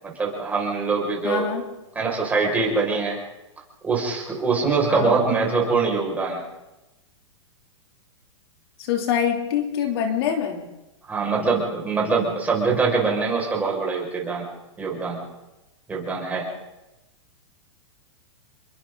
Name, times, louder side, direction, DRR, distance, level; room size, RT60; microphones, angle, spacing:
voice 1, 0.0-1.5 1.9-3.2 3.8-6.4 11.1-14.5 14.8-15.2 15.9-16.4, right 4 dB, 10° right, -2 dB, 5.9 m, -23 dB
voice 2, 1.2-1.6 4.9-5.2 8.8-10.6, left 8 dB, 55° left, 3 dB, 3.2 m, -24 dB
30.0 x 22.5 x 4.0 m, 0.98 s
hypercardioid pair, 155°, 16 cm